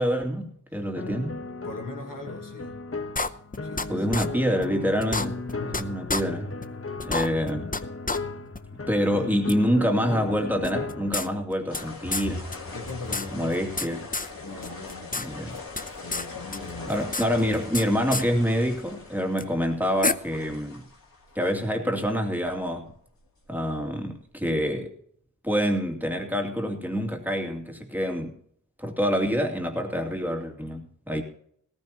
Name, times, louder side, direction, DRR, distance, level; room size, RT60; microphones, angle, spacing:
voice 1, 0.0-1.4 3.9-6.5 7.0-7.7 8.9-12.4 13.3-14.0 15.2-15.5 16.9-20.8 21.3-22.9 23.5-24.9 25.4-28.3 28.8-31.2, equal, 5° right, 2 dB, 2.6 m, -26 dB
sound 1, 1.0-11.4, left 3 dB, 40° left, 1.1 m, -36 dB
voice 2, 1.3-2.8 3.6-4.2 9.1-9.4 12.7-13.7 14.4-15.4 16.0-17.1, left 2 dB, 65° left, 3 dB, 1.7 m, -40 dB
sound 2, 3.2-3.9 4.1-4.3 4.6-4.7 5.0-5.8 6.1-6.2 6.6-6.7 7.0-7.8 8.1-8.2 8.5-8.6 9.5-9.6 10.6-11.8 12.1-12.3 12.5-12.6 12.9-13.9 14.1-14.3 14.6-15.3 15.5-16.3 16.5-17.8 18.1-18.2 19.4-19.5 20.0-20.1, left 3 dB, 25° left, 0.7 m, -28 dB
sound 3, 11.7-24.3, left 3 dB, 85° left, 2.5 m, -41 dB
18.0 x 14.5 x 3.0 m, 0.64 s
wide cardioid pair, 60°, 34 cm